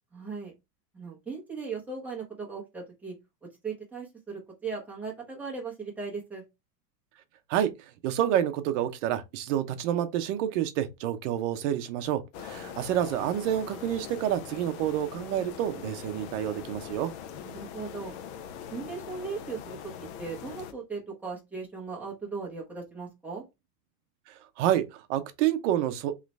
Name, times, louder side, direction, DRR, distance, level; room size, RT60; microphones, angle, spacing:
voice 1, 0.1-0.5 0.9-3.1 3.6-6.4 12.5-12.8 17.4-18.1 18.7-23.4, right 5 dB, 5° right, 1.1 m, -38 dB
voice 2, 8.0-17.1 24.3-26.1, right 11 dB, 50° right, 0.8 m, -28 dB
sound 1, 12.3-20.7, left 8 dB, 45° left, 0.5 m, -42 dB
3.8 x 3.2 x 3.2 m
supercardioid pair, 165°, 46 cm